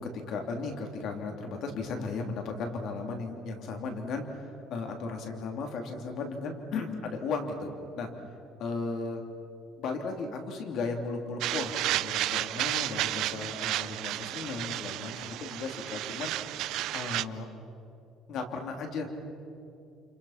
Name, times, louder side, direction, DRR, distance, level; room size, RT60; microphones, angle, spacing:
voice 1, 0.0-4.3 4.7-8.1 8.6-9.2 9.8-16.3 16.9-17.5 18.3-19.1, left 4 dB, 50° left, 3 dB, 3.0 m, -35 dB
sound 1, 11.4-17.2, right 15 dB, 65° right, 0.6 m, -32 dB
29.5 x 29.5 x 5.9 m, 2.7 s
cardioid pair, 165°, 0 cm